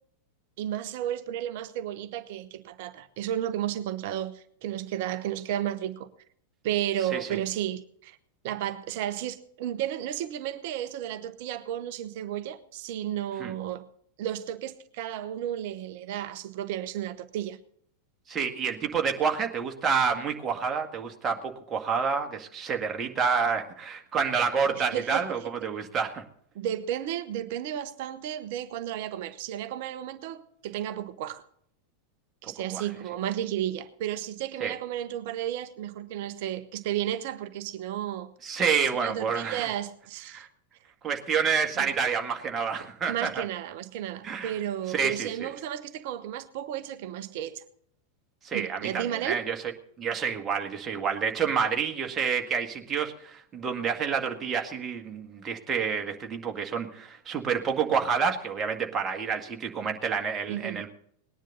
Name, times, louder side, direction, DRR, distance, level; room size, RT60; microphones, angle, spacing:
voice 1, 0.6-6.1 6.6-8.2 8.4-13.8 14.2-17.6 24.8-25.2 26.5-31.4 32.4-38.3 39.0-40.5 41.8-41.9 42.8-47.6 48.5-49.4 60.5-60.9, right 11 dB, 50° right, 0.9 m, -33 dB
voice 2, 18.3-26.2 32.7-32.8 34.6-34.8 38.4-39.7 40.3-40.5 41.0-43.5 44.2-44.6 44.9-45.5 48.4-49.6 50.0-60.9, right 6 dB, 25° right, 1.9 m, -28 dB
19.5 x 10.5 x 4.0 m
figure-of-eight pair, 90°, 0 cm